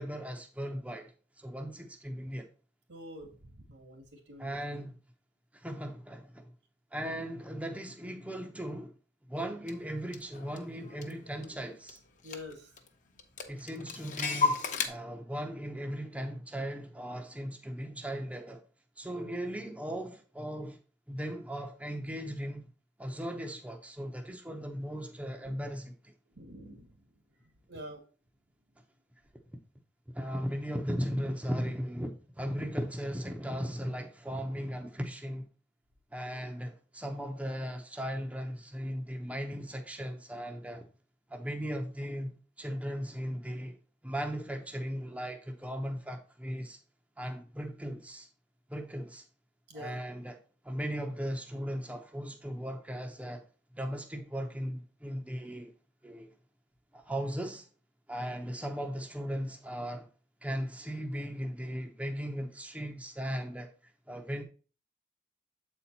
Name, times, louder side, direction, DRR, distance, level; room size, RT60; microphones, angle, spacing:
voice 1, 0.0-2.5 4.4-5.0 5.5-6.5 6.9-8.9 9.3-12.0 13.5-18.6 19.0-20.8 21.1-22.6 23.0-26.1 30.1-35.5 36.1-40.9 41.3-43.8 44.0-46.8 47.2-48.3 48.7-49.2 49.7-50.4 50.6-53.4 53.7-55.7 56.0-56.3 56.9-57.7 58.1-60.1 60.4-64.4, equal, 10° right, 0.7 m, -37 dB
voice 2, 2.9-4.8 12.2-12.7 19.1-19.3 25.4-25.5 26.4-26.9 27.7-28.0 49.7-50.0, equal, 80° right, 2.3 m, -46 dB
Clock, 9.7-9.8 10.1-11.6 11.9-12.0 12.2-12.9 13.2-14.9, left 4 dB, 45° left, 0.9 m, -33 dB
7.7 x 4.3 x 4.1 m
head